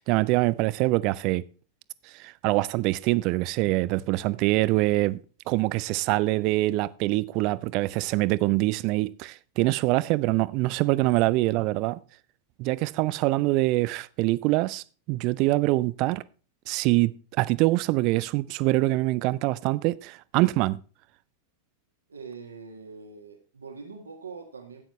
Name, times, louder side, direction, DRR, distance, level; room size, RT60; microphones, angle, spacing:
voice 1, 0.0-1.4 2.1-5.2 5.5-12.0 12.6-16.2 16.7-17.1 17.4-20.8, right 20 dB, 40° right, 0.5 m, -24 dB
voice 2, 22.1-24.8, right 5 dB, 75° right, 1.6 m, -43 dB
13.0 x 9.1 x 3.1 m
figure-of-eight pair, 90°, 0 cm